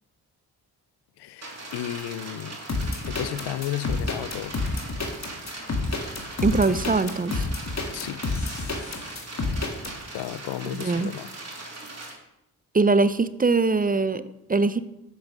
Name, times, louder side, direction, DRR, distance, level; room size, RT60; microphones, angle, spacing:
voice 1, 1.2-2.6 3.1-4.5 6.7-6.8 7.9-8.2 10.1-11.3, left 13 dB, 75° left, 17 dB, 0.5 m, -33 dB
sound 1, 1.4-12.1, right 2 dB, 40° right, 2.9 m, -40 dB
sound 2, 2.7-9.9, left 3 dB, 40° left, 1.9 m, -29 dB
voice 2, 6.4-7.5 10.6-11.1 12.7-14.8, right 3 dB, 20° right, 14 dB, 0.5 m, -22 dB
7.9 x 5.3 x 6.2 m, 0.86 s
supercardioid pair, 45°, 40 cm